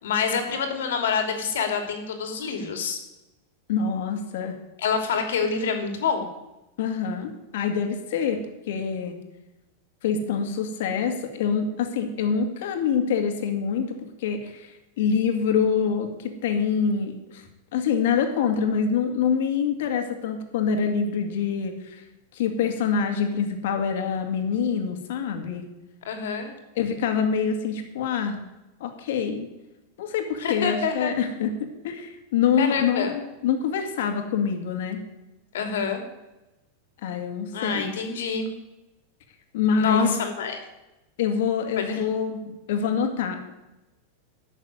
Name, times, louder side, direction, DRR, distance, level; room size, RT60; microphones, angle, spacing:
voice 1, 0.0-3.0 4.8-6.3 26.0-26.5 30.4-31.1 32.6-33.1 35.5-36.0 37.5-38.5 39.8-40.6 41.8-42.0, left 6 dB, 85° left, 5 dB, 2.8 m, -27 dB
voice 2, 3.7-4.6 6.8-8.4 8.7-9.2 10.0-17.5 17.7-22.0 22.3-25.6 26.8-28.4 28.8-29.5 30.0-31.5 31.8-35.0 37.0-37.9 39.5-40.1 41.2-42.4 42.7-43.5, left 6 dB, 70° left, 5 dB, 2.3 m, -25 dB
12.0 x 6.7 x 9.6 m, 0.98 s
supercardioid pair, 155°, 0 cm